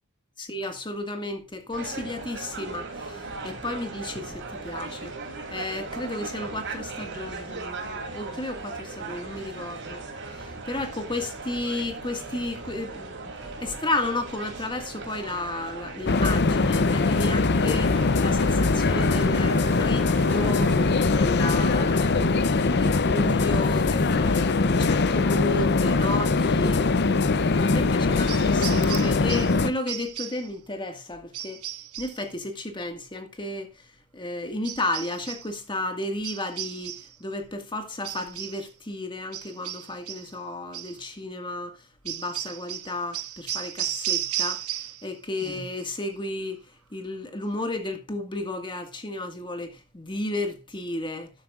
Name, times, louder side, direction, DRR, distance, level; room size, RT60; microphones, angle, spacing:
voice 1, 0.4-5.2 5.5-10.0 10.3-13.2 13.4-26.9 27.4-31.6 32.0-33.7 34.1-46.6 46.9-51.3, left 2 dB, 20° left, 1.9 m, -33 dB
sound 1, 1.7-20.9, right 3 dB, 55° right, 3.1 m, -38 dB
sound 2, 16.1-29.7, left 3 dB, 50° left, 0.7 m, -22 dB
sound 3, 28.3-29.6 29.9-30.5 31.3-32.2 34.6-35.5 36.2-37.2 38.0-38.7 39.3-40.3 40.7-41.0 42.1-45.1 45.4-45.9, right 12 dB, 80° right, 0.9 m, -34 dB
13.0 x 9.3 x 2.5 m
head